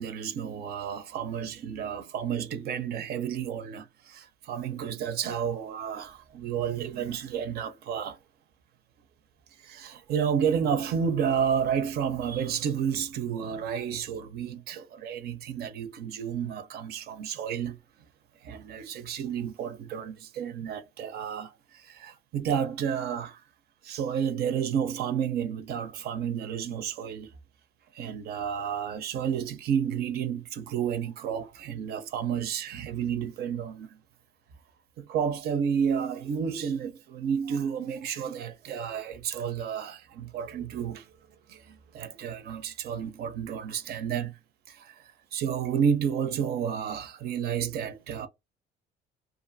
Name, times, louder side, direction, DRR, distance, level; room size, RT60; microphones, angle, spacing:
voice 1, 0.0-8.2 9.6-17.8 18.4-23.4 23.8-27.3 27.9-34.0 35.0-41.1 41.5-44.3 44.7-45.0 45.3-48.3, right 8 dB, 70° right, 0.6 m, -31 dB
2.5 x 2.5 x 2.5 m
cardioid pair, 110°, 17 cm